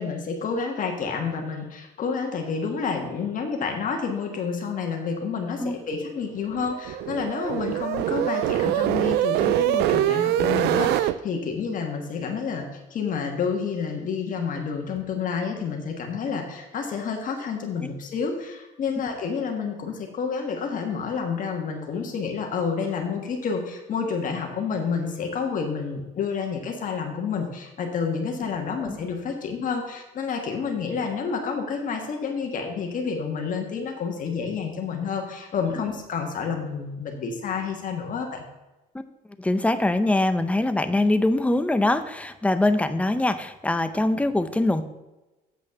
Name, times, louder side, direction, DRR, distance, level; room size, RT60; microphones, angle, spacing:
voice 1, 0.0-12.6 12.9-38.4, left 5 dB, 50° left, 2 dB, 1.5 m, -29 dB
sound 1, 6.4-11.1, right 13 dB, 75° right, 0.4 m, -24 dB
voice 2, 39.4-44.8, left 2 dB, 10° left, 10 dB, 0.6 m, -23 dB
8.1 x 6.1 x 5.8 m, 1.1 s
cardioid pair, 110°, 17 cm